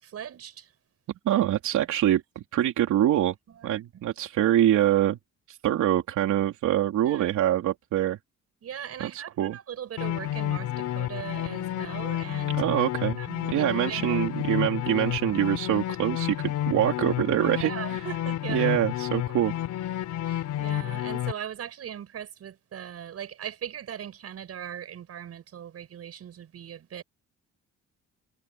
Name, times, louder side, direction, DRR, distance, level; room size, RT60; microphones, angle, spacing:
voice 1, 0.0-0.7 1.3-1.4 2.1-2.2 3.5-4.0 7.1-7.3 8.6-12.6 13.2-14.3 17.6-18.8 20.2-27.0, right 9 dB, 55° right, 7.0 m, -39 dB
voice 2, 1.3-3.3 3.6-5.2 5.5-8.2 9.0-9.6 12.6-13.2 13.5-17.7 18.5-19.6, right 12 dB, 85° right, 3.4 m, -25 dB
sound 1, 10.0-21.3, left 12 dB, 85° left, 4.0 m, -30 dB
cardioid pair, 150°, 29 cm